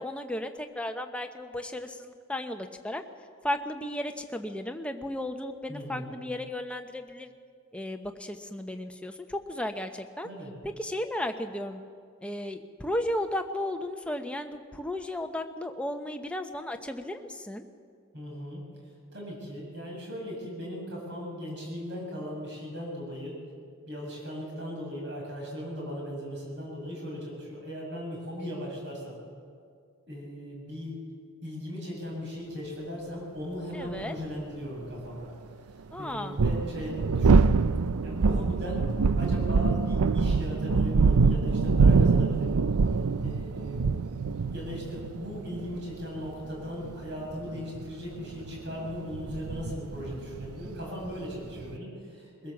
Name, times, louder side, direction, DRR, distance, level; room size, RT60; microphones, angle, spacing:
voice 1, 0.0-3.0 3.4-7.3 7.7-10.3 10.6-11.8 12.2-17.6 33.7-34.2 35.9-36.3, left 1 dB, 5° left, 5 dB, 1.0 m, -34 dB
voice 2, 5.7-6.1 10.2-10.5 18.1-18.6 19.1-23.4 23.9-29.2 30.1-31.0 31.4-35.3 36.0-37.6 38.0-38.9 39.2-42.7 43.2-43.9 44.5-52.5, equal, 50° right, -2 dB, 7.4 m, -38 dB
sound 1, 34.0-34.1 36.1-51.8, right 4 dB, 85° right, 0.5 m, -25 dB
22.5 x 16.0 x 7.3 m, 2.1 s
head